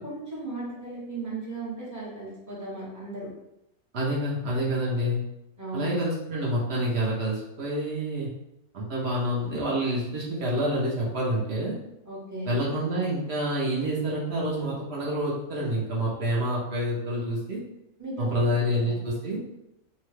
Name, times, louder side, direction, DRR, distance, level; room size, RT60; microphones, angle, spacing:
voice 1, 0.0-3.3 5.6-6.0 12.1-12.5 18.0-18.5 18.8-19.0, right 2 dB, 15° right, -7 dB, 0.6 m, -36 dB
voice 2, 3.9-5.2 5.7-8.3 8.7-11.7 12.5-17.6 18.2-19.4, equal, 55° right, -5 dB, 0.8 m, -27 dB
2.8 x 2.2 x 3.1 m, 0.88 s
omnidirectional pair, 1.5 m